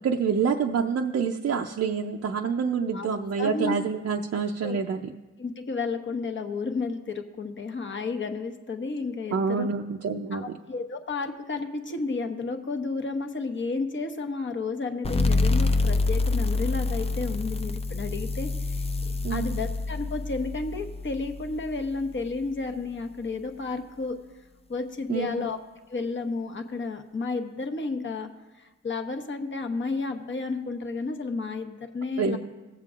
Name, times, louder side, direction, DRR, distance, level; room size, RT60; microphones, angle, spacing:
voice 1, 0.0-5.1 9.3-10.5 19.2-19.6 25.1-25.5 32.2-32.4, right 6 dB, 50° right, 1 dB, 0.5 m, -27 dB
voice 2, 2.9-3.7 4.6-4.8 5.4-9.7 10.3-24.2 24.7-25.6 25.9-28.3 28.5-32.4, left 3 dB, 40° left, 6 dB, 1.0 m, -32 dB
sound 1, 15.0-22.3, left 3 dB, 20° left, 0.5 m, -27 dB
20.5 x 7.4 x 2.4 m, 1.2 s
cardioid pair, 75°, 31 cm